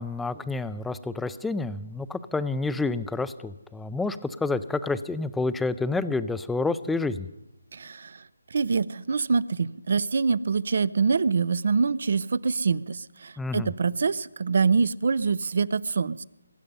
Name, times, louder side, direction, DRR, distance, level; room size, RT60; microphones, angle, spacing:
voice 1, 0.0-7.3 13.4-13.7, left 3 dB, 5° left, 14 dB, 0.5 m, -29 dB
voice 2, 7.7-8.1 8.5-16.2, right 5 dB, 55° right, 20 dB, 0.5 m, -25 dB
22.5 x 11.0 x 5.5 m, 0.93 s
figure-of-eight pair, 150°, 0 cm